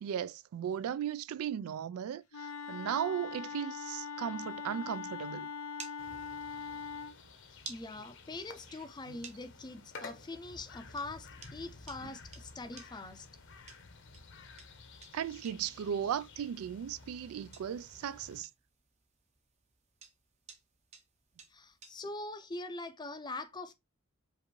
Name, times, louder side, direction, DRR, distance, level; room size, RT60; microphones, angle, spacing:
voice 1, 0.0-5.5 9.1-9.2 15.1-18.5, right 9 dB, 85° right, 0.3 m, -36 dB
Wind instrument woodwind instrument, 2.3-7.2, left 6 dB, 90° left, 0.5 m, -42 dB
sound 1, 4.3-22.2, right 5 dB, 30° right, 0.7 m, -56 dB
sound 2, 6.0-18.4, left 4 dB, 60° left, 0.8 m, -53 dB
voice 2, 7.7-13.3 21.5-23.7, left 2 dB, 20° left, 0.4 m, -43 dB
5.0 x 2.6 x 3.0 m
head